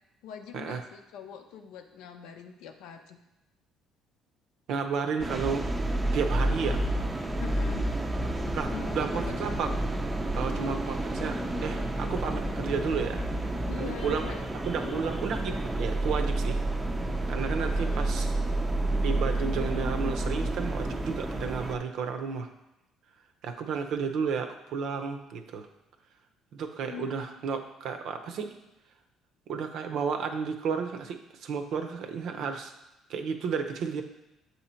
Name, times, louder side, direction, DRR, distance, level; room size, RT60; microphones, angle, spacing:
voice 1, 0.2-3.2 7.4-7.8 8.7-9.5 13.7-14.4 14.8-15.1 17.7-18.3 26.8-27.2, left 7 dB, 80° left, 6 dB, 0.6 m, -43 dB
voice 2, 4.7-5.7 6.1-6.8 8.5-9.7 10.3-13.2 13.8-14.3 14.7-16.6 17.3-18.3 19.0-22.5 23.4-25.7 26.5-28.5 29.5-32.7 33.1-34.0, right 6 dB, 70° right, 6 dB, 0.6 m, -32 dB
sound 1, 5.2-21.8, right 1 dB, 15° right, 0.5 m, -30 dB
7.8 x 2.8 x 4.3 m, 0.94 s
cardioid pair, 100°, 0 cm